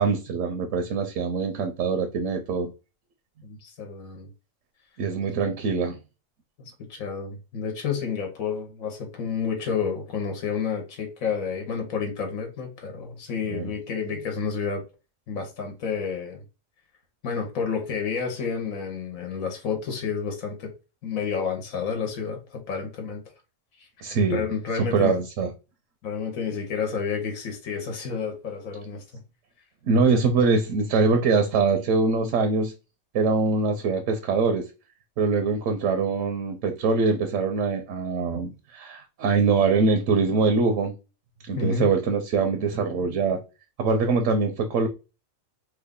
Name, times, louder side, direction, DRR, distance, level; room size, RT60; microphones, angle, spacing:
voice 1, 0.0-2.7 5.0-6.0 13.5-13.7 24.0-24.4 24.8-25.5 29.8-32.7 33.1-34.7 35.2-40.9 41.5-43.4 43.8-44.9, right 4 dB, 75° right, 0.9 m, -23 dB
voice 2, 3.4-4.3 6.6-14.8 15.3-16.4 17.2-20.7 21.0-23.2 23.8-23.9 24.3-25.1 26.0-29.0 41.6-41.9, left 6 dB, 85° left, 1.2 m, -30 dB
3.1 x 2.3 x 3.6 m
omnidirectional pair, 1.4 m